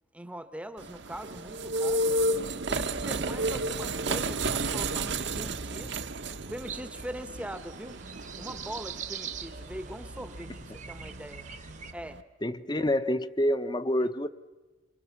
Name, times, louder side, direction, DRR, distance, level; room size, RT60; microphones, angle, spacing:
voice 1, 0.1-2.1 2.7-6.0 6.5-8.0 8.4-11.4 11.9-12.2, right 1 dB, 5° right, 11 dB, 0.9 m, -41 dB
sound 1, 0.8-12.2, right 2 dB, 60° right, 1.0 m, -33 dB
sound 2, 6.6-11.9, right 7 dB, 40° right, 1.0 m, -43 dB
voice 2, 12.4-14.3, left 1 dB, 20° left, 13 dB, 0.8 m, -27 dB
27.5 x 25.0 x 7.0 m, 1.2 s
head